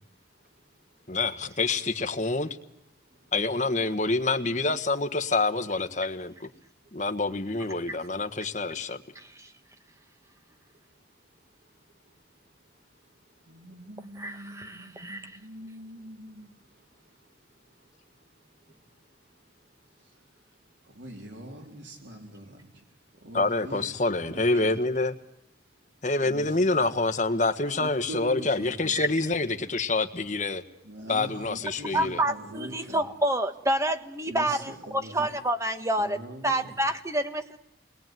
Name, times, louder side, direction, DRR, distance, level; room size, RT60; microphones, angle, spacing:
voice 1, 0.4-0.8 1.1-1.2 2.9-3.4 10.7-10.8 11.4-12.3 13.0-13.7 16.5-20.1, right 1 dB, 50° right, 5.3 m, -66 dB
voice 2, 1.1-2.5 3.3-6.5 6.9-9.0 23.3-25.1 26.0-30.6 31.1-32.2, left 3 dB, 40° left, 1.5 m, -27 dB
voice 3, 9.1-9.5 14.2-15.3 28.9-29.1 31.9-36.2 36.4-37.6, right 1 dB, 15° right, 1.6 m, -28 dB
voice 4, 13.5-16.5 20.0-20.1 20.8-22.7 23.1-24.0 24.2-24.9 26.2-26.9 27.7-29.1 30.8-33.1 34.3-35.3 36.0-36.7, right 1 dB, 85° right, 4.2 m, -43 dB
29.0 x 21.5 x 9.3 m
head